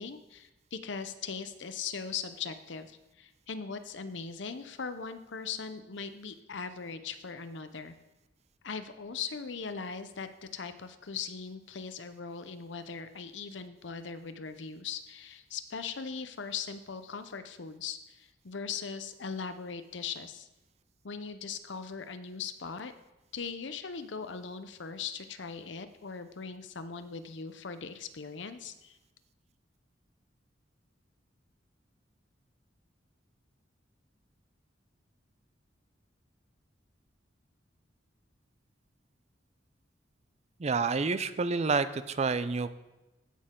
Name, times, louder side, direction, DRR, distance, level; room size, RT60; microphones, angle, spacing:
voice 1, 0.0-7.9 8.6-20.5 21.0-22.9 23.3-29.0, left 5 dB, 75° left, 10 dB, 0.7 m, -40 dB
voice 2, 40.6-42.7, right 4 dB, 35° right, 13 dB, 0.5 m, -28 dB
15.5 x 6.5 x 3.8 m, 1.0 s
head